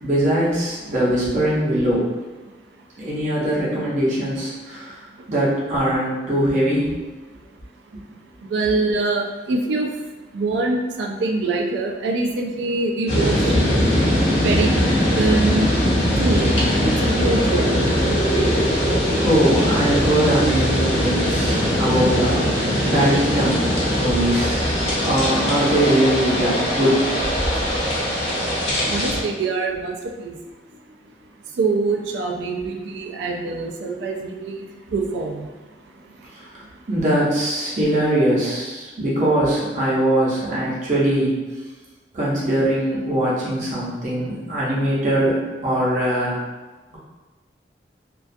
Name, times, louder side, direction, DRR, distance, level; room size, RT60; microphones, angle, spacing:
voice 1, 0.0-2.1 3.0-5.0 5.3-6.9 19.1-24.6 25.0-27.0 36.3-36.4 36.9-41.3 42.1-45.3 45.6-46.4 46.9-47.0, right 1 dB, 40° right, -7 dB, 0.7 m, -21 dB
voice 2, 8.5-9.9 10.3-13.5 14.4-14.7 15.2-15.7 16.2-16.6 16.8-17.7 28.9-30.4 31.6-34.7 34.9-35.5, right 3 dB, 80° right, 2 dB, 0.3 m, -24 dB
sound 1, 13.1-29.2, equal, 35° left, 0.6 m, -20 dB
2.3 x 2.3 x 2.5 m, 1.2 s
head